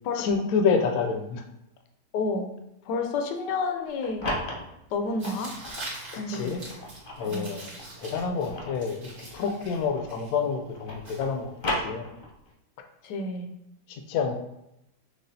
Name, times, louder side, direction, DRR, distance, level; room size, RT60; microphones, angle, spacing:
voice 1, 0.1-1.4 6.3-6.6 7.2-7.7 8.0-9.0 9.3-11.5 11.8-12.1 13.9-14.4, left 5 dB, 70° left, 5 dB, 1.0 m, -27 dB
voice 2, 2.1-2.5 2.8-4.3 4.9-5.5 6.2-6.5 7.3-7.5 13.0-13.5, left 3 dB, 90° left, 5 dB, 1.2 m, -30 dB
sound 1, 3.8-5.9 6.5-10.2 10.5-12.5, left 1 dB, 45° left, 0.7 m, -36 dB
Tearing, 5.2-11.8, right 2 dB, 65° right, 2.0 m, -44 dB
6.4 x 2.4 x 2.6 m, 0.84 s
omnidirectional pair, 1.8 m